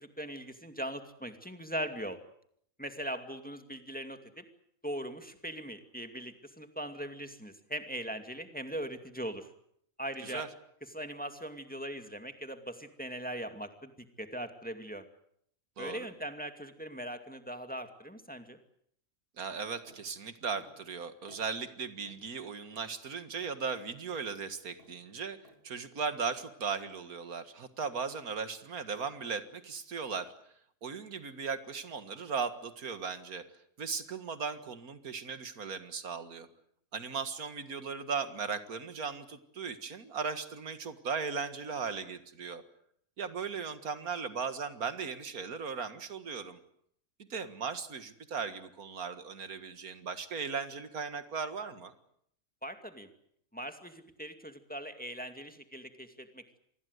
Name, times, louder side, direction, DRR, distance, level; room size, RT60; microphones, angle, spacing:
voice 1, 0.0-2.2 2.8-4.5 4.8-9.5 10.0-10.4 10.9-15.1 15.8-18.6 52.6-53.1 53.5-56.6, equal, 5° left, 7 dB, 2.3 m, -40 dB
voice 2, 15.8-16.1 19.4-25.4 25.6-30.3 30.8-33.4 33.8-36.5 36.9-42.6 43.2-46.6 47.2-51.9, right 5 dB, 90° right, 10 dB, 2.2 m, -37 dB
sound 1, 19.9-20.1 20.6-20.8 21.3-21.5 22.1-22.2 22.7-22.9 23.4-23.6 24.1-24.3 24.8-25.0 25.4-25.6, left 2 dB, 40° left, 3.4 m, -58 dB
27.0 x 20.5 x 8.1 m, 0.68 s
omnidirectional pair, 1.5 m